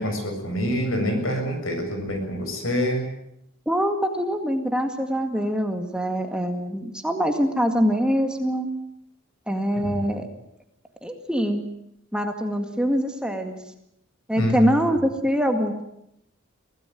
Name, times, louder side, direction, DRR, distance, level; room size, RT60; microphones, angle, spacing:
voice 1, 0.0-3.1 9.8-10.2 14.4-14.7, equal, 75° left, 5 dB, 7.2 m, -26 dB
voice 2, 3.7-8.7 9.5-10.3 11.0-11.6 12.1-13.6 14.3-15.8, equal, 5° right, 5 dB, 2.0 m, -24 dB
24.0 x 17.5 x 9.3 m, 0.78 s
head